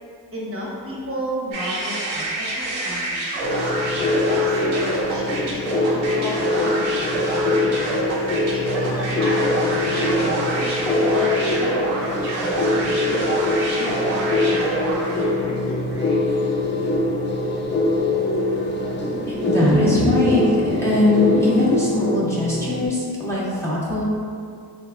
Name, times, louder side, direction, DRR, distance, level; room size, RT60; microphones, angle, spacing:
voice 1, 0.3-7.8 8.5-13.4 13.8-16.2, equal, 30° right, -4 dB, 0.8 m, -33 dB
sound 1, 1.5-15.3, right 2 dB, 85° right, 0.6 m, -27 dB
sound 2, 3.4-22.9, left 2 dB, 25° left, 0.3 m, -23 dB
cathedral public before concert, 3.6-21.8, equal, 85° left, 0.8 m, -35 dB
voice 2, 19.3-24.0, left 1 dB, 5° left, -8 dB, 0.7 m, -21 dB
3.3 x 2.0 x 2.4 m, 2.2 s
supercardioid pair, 50°, 46 cm